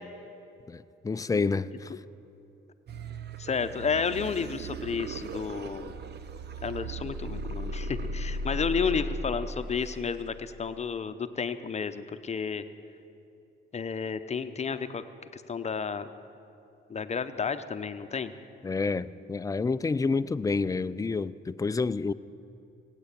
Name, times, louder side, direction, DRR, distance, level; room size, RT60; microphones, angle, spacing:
voice 1, 0.7-1.9 18.6-22.1, left 4 dB, 15° left, 0.4 m, -29 dB
sound 1, 2.9-10.9, right 1 dB, 55° right, 0.8 m, -37 dB
voice 2, 3.4-5.9 6.6-12.6 13.7-15.0 15.3-16.1 16.9-18.3, left 6 dB, 35° left, 0.8 m, -31 dB
18.5 x 9.0 x 8.3 m
cardioid pair, 90°, 20 cm